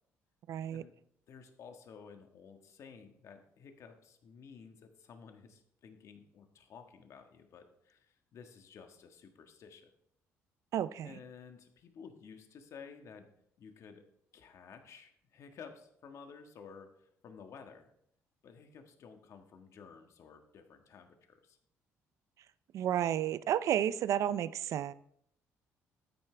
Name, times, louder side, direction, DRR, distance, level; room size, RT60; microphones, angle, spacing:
voice 1, 0.5-0.8 10.7-11.1 22.7-24.9, right 10 dB, 65° right, 15 dB, 0.5 m, -31 dB
voice 2, 1.3-9.9 11.0-13.3 13.6-14.0 14.3-17.9 18.4-21.6, left 6 dB, 60° left, 6 dB, 1.6 m, -53 dB
13.0 x 9.6 x 3.4 m, 0.69 s
cardioid pair, 85°, 6 cm